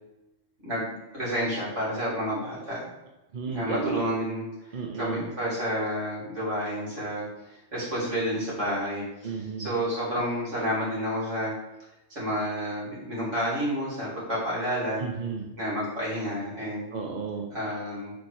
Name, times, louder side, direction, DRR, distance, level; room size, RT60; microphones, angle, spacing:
voice 1, 0.6-2.9 3.4-4.5 4.9-11.5 12.1-15.0 15.6-16.9 17.5-18.1, equal, 65° right, -8 dB, 3.4 m, -30 dB
voice 2, 3.3-4.0 4.7-5.3 9.2-9.7 15.0-15.5 16.9-17.5, right 4 dB, 45° right, 1 dB, 0.9 m, -33 dB
7.3 x 4.5 x 4.7 m, 0.96 s
omnidirectional pair, 1.3 m